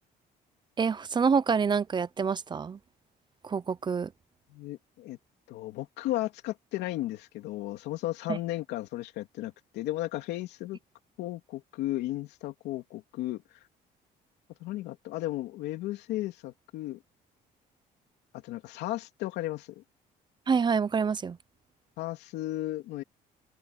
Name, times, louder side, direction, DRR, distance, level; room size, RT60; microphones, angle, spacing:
voice 1, 0.8-2.8 3.4-4.1 8.3-8.4 20.5-21.4, right 5 dB, 25° right, 0.6 m, -27 dB
voice 2, 4.5-5.2 5.5-10.8 11.2-13.4 14.6-17.0 18.4-19.8 22.0-23.0, left 16 dB, 90° left, 2.9 m, -34 dB
open air
cardioid pair, 110°, 17 cm